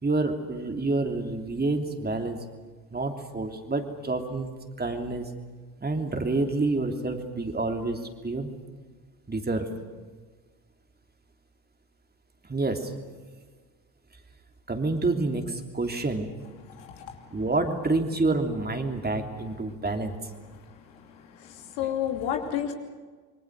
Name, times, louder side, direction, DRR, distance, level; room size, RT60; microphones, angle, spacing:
voice 1, 0.0-2.4 2.9-4.5 4.8-5.3 5.8-8.5 9.3-9.7 12.5-12.9 14.7-16.3 17.3-20.3 21.8-21.9, right 2 dB, 20° right, 5 dB, 3.2 m, -28 dB
voice 2, 21.8-22.7, left 10 dB, 65° left, 4 dB, 3.0 m, -29 dB
26.5 x 24.5 x 6.5 m, 1.4 s
figure-of-eight pair, 50°, 48 cm